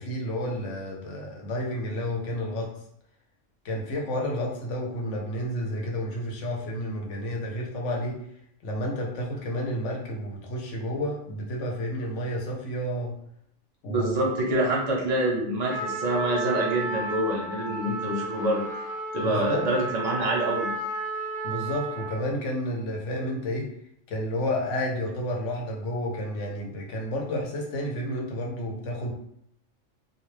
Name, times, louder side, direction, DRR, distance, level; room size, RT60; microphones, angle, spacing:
voice 1, 0.0-2.7 3.6-8.2 8.6-13.2 13.8-14.3 19.2-19.6 21.4-23.7 24.1-29.1, equal, 70° left, 0 dB, 1.0 m, -31 dB
voice 2, 13.9-18.7 19.1-20.7, right 1 dB, 40° right, -2 dB, 0.6 m, -26 dB
Trumpet, 15.7-22.3, right 2 dB, 10° left, 0.5 m, -33 dB
2.3 x 2.2 x 3.2 m, 0.71 s
omnidirectional pair, 1.3 m